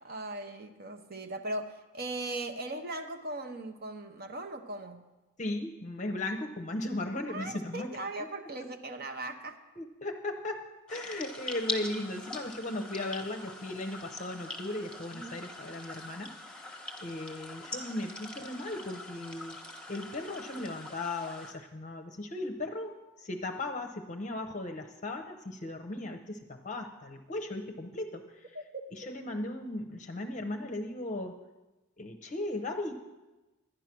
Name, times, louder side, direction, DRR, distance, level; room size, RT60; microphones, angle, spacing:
voice 1, 0.0-5.1 7.3-9.6 15.1-15.4 28.5-29.1, right 2 dB, 45° right, 6 dB, 0.8 m, -39 dB
voice 2, 5.4-7.9 9.8-10.6 10.9-16.3 16.6-16.7 17.0-19.6 19.9-28.6 28.9-31.4 32.0-32.9, left 2 dB, 35° left, 4 dB, 0.7 m, -37 dB
sound 1, 10.9-21.5, left 2 dB, 5° left, 1.1 m, -43 dB
11.5 x 10.0 x 6.0 m, 1.1 s
head